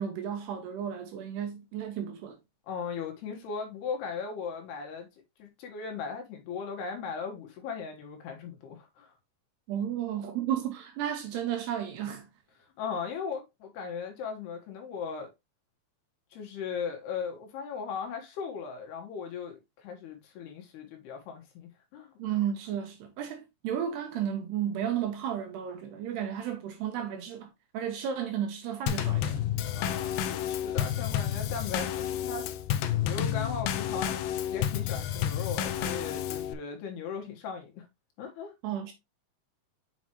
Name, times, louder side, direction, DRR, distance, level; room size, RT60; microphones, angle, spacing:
voice 1, 0.0-2.4 9.7-12.3 22.2-29.5 38.6-38.9, right 9 dB, 75° right, 2.7 m, -33 dB
voice 2, 2.7-5.1 5.4-9.1 12.8-15.3 16.3-22.1 29.7-32.5 33.0-34.2 34.5-37.8 38.2-38.5, left 6 dB, 70° left, 3.1 m, -38 dB
Drum kit / Snare drum / Bass drum, 28.9-36.5, left 10 dB, 85° left, 2.6 m, -30 dB
7.2 x 6.1 x 2.9 m
omnidirectional pair, 5.4 m